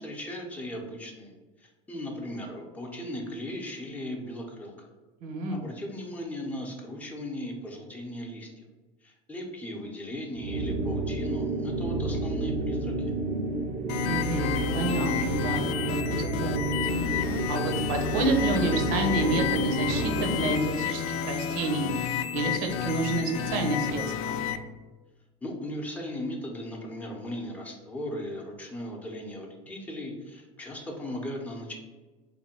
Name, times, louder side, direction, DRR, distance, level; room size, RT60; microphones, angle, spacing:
voice 1, 0.0-4.9 5.5-8.6 9.0-13.1 21.6-21.7 25.4-31.7, left 1 dB, 10° left, -2 dB, 0.7 m, -37 dB
voice 2, 5.2-5.6 14.0-16.8 17.5-24.4, right 2 dB, 75° right, 3 dB, 0.8 m, -29 dB
sound 1, 10.4-20.8, right 2 dB, 45° right, 0.5 m, -30 dB
sound 2, 13.9-24.6, left 9 dB, 75° left, 0.4 m, -31 dB
3.3 x 2.2 x 4.3 m, 1.2 s
supercardioid pair, 115°, 17 cm